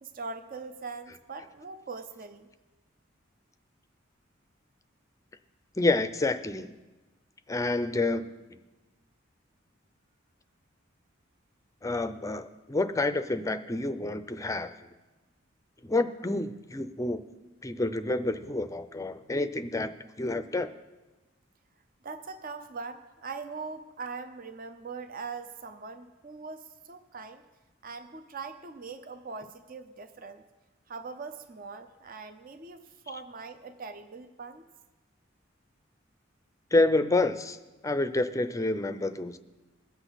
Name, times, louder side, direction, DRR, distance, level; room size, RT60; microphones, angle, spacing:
voice 1, 0.0-2.5 22.0-27.4 27.8-30.4 30.9-34.6, right 4 dB, 45° right, 9 dB, 0.7 m, -41 dB
voice 2, 5.8-6.7 7.5-8.3 11.8-14.7 15.8-17.2 17.6-20.7 36.7-37.6 37.8-39.4, left 2 dB, 15° left, 11 dB, 0.5 m, -28 dB
21.5 x 8.1 x 4.1 m, 1.2 s
head